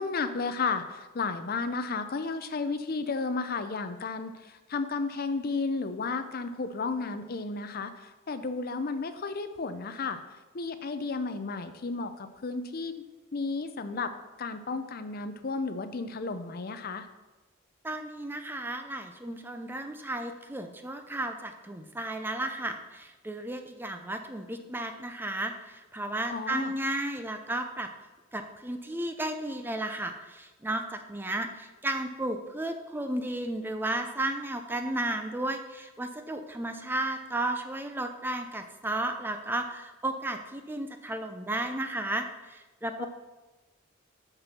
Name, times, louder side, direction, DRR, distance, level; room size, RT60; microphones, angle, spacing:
voice 1, 0.0-10.2 10.5-13.0 13.3-14.1 14.4-17.1 26.3-26.7 43.0-43.1, left 4 dB, 45° left, 10 dB, 0.5 m, -33 dB
voice 2, 17.8-27.9 28.3-43.1, right 1 dB, 10° right, 6 dB, 0.5 m, -33 dB
6.6 x 6.0 x 5.9 m, 1.1 s
head